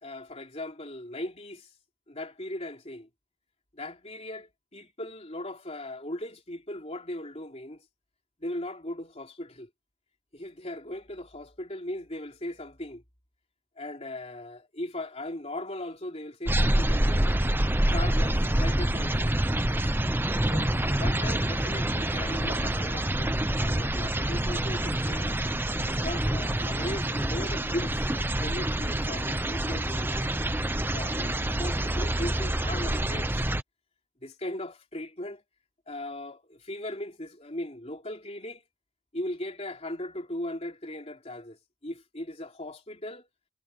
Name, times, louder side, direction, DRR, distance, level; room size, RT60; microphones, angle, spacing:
voice 1, 0.0-1.7 2.1-3.1 3.7-7.8 8.4-9.7 10.3-13.0 13.8-17.4 17.9-19.3 20.5-25.4 25.9-28.0 28.4-30.3 30.8-33.4 34.2-35.4 35.9-38.6 39.1-43.3, left 1 dB, 30° left, 3.4 m, -38 dB
sound 1, 16.5-33.6, right 1 dB, 10° right, 0.8 m, -27 dB
head